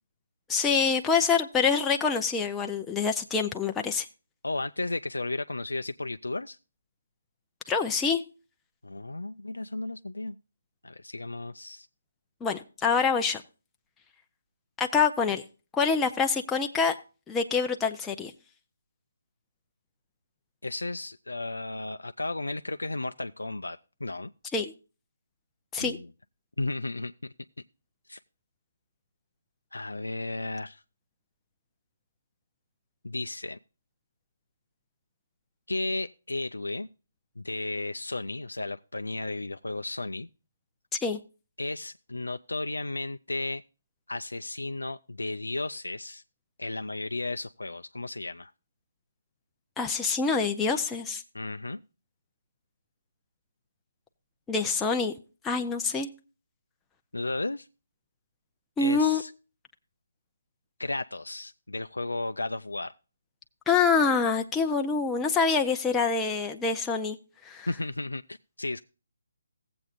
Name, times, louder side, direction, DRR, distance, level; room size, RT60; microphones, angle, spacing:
voice 1, 0.5-4.1 7.7-8.2 12.4-13.4 14.8-15.4 15.7-16.9 17.3-18.3 24.5-24.7 25.7-26.0 41.0-41.2 49.8-51.2 54.5-55.1 55.4-56.1 58.8-59.2 63.7-67.2 67.4-67.7, left 5 dB, 10° left, 3 dB, 0.6 m, -26 dB
voice 2, 4.4-6.6 8.8-10.4 10.8-11.9 20.6-24.3 25.8-26.1 26.6-27.3 28.1-28.2 29.7-30.8 33.0-33.6 35.7-36.9 37.4-40.3 41.6-43.6 44.1-46.2 46.6-48.5 51.3-51.8 57.1-57.7 58.8-59.3 60.8-62.9 67.7-68.8, left 2 dB, 85° left, 9 dB, 0.4 m, -34 dB
16.5 x 7.8 x 2.5 m, 0.34 s
figure-of-eight pair, 145°, 0 cm